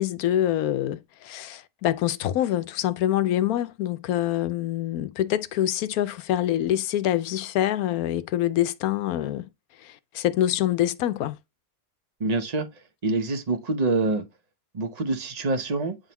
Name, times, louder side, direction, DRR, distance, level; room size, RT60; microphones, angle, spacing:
voice 1, 0.0-9.5 9.8-11.4, left 12 dB, 90° left, 1.1 m, -25 dB
voice 2, 12.2-12.7 13.0-14.2 14.7-16.0, right 3 dB, 35° right, 0.9 m, -25 dB
8.8 x 3.7 x 2.9 m
omnidirectional pair, 1.5 m